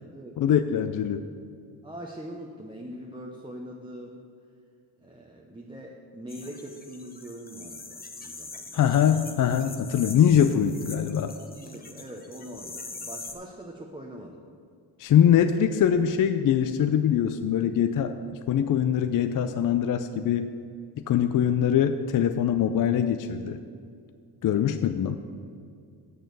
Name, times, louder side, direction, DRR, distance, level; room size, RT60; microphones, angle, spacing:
voice 1, 0.4-1.2 8.7-11.3 15.0-18.1 18.5-20.5 21.1-23.6 24.4-25.2, left 9 dB, 45° left, 9 dB, 0.4 m, -23 dB
voice 2, 1.8-4.3 5.0-8.8 11.4-14.4, right 1 dB, 10° right, -1 dB, 0.8 m, -42 dB
sound 1, 6.3-13.3, left 3 dB, 20° left, 0.9 m, -43 dB
6.5 x 6.4 x 6.7 m, 2.3 s
cardioid pair, 75°, 46 cm